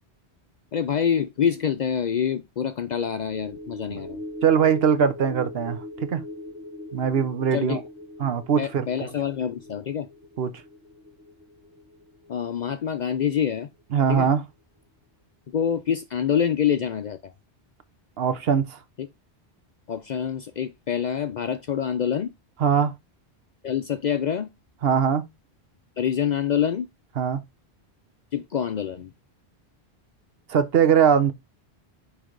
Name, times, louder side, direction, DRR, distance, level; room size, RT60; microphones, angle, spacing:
voice 1, 0.7-4.2 7.5-7.8 8.6-10.1 12.3-13.7 14.1-14.3 15.5-17.3 19.0-19.1 19.9-22.3 23.6-24.5 26.0-26.9 28.3-29.1, left 8 dB, 55° left, 0.5 m, -26 dB
sound 1, 3.2-13.8 14.1-14.3, left 1 dB, 10° right, 1.2 m, -41 dB
voice 2, 4.4-5.8 6.1-6.2 6.9-7.8 8.2-9.1 10.4-10.5 13.9-14.4 18.2-18.8 22.6-22.9 24.8-25.2 27.2-27.4 30.5-31.3, right 7 dB, 65° right, 1.0 m, -21 dB
9.6 x 3.3 x 3.8 m
omnidirectional pair, 1.1 m